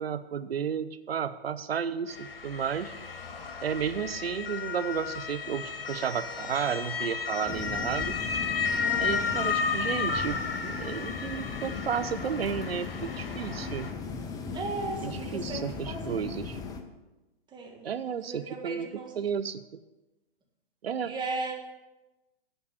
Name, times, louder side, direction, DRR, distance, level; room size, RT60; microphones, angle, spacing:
voice 1, 0.0-2.9 3.6-8.2 9.0-13.9 15.0-16.6 17.8-18.9 19.2-19.6 20.8-21.1, right 7 dB, 85° right, 13 dB, 0.5 m, -32 dB
Motor vehicle (road) / Siren, 2.1-13.9, left 5 dB, 70° left, 1.6 m, -33 dB
sound 1, 7.5-16.8, left 5 dB, 10° left, 0.6 m, -37 dB
voice 2, 8.8-9.3 14.5-16.2 17.5-19.1 21.0-21.5, right 3 dB, 15° right, 0 dB, 1.6 m, -37 dB
8.8 x 5.3 x 7.9 m, 1.1 s
hypercardioid pair, 120°, 29 cm